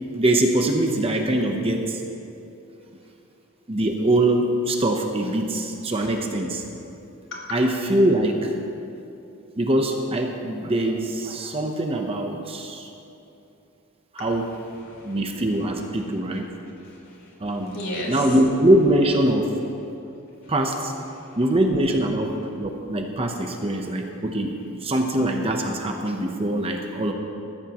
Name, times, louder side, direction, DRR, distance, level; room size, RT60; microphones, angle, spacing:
voice 1, 0.1-2.0 3.7-6.6 7.5-8.6 9.6-12.9 14.2-14.5 15.0-16.5 17.4-17.8 18.1-19.5 20.5-20.9 21.4-24.5 24.8-27.1, right 1 dB, 25° right, 3 dB, 0.9 m, -23 dB
voice 2, 2.8-3.1 7.3-7.6 14.2-18.4 20.1-20.2 20.4-21.4 22.3-22.4 23.4-23.5, left 1 dB, 55° left, -3 dB, 3.9 m, -39 dB
20.5 x 14.5 x 3.1 m, 2.8 s
head